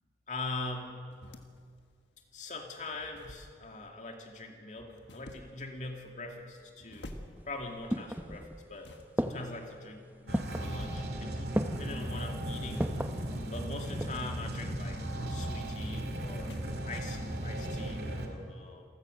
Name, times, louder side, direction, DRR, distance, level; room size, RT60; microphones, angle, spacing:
voice 1, 0.3-1.0 2.3-7.1 7.5-8.9 9.2-12.9 13.5-15.0 15.3-18.8, left 2 dB, 40° left, 2 dB, 2.4 m, -42 dB
sound 1, 0.8-17.4, left 1 dB, 85° left, 1.7 m, -53 dB
sound 2, 7.4-8.7 9.2-9.7 10.3-10.7 11.5-12.0 12.8-13.2 13.7-14.3 14.6-14.7, equal, 10° right, 0.8 m, -34 dB
sound 3, 10.3-18.3, right 1 dB, 60° right, 2.3 m, -36 dB
28.5 x 15.0 x 6.5 m, 2.1 s
head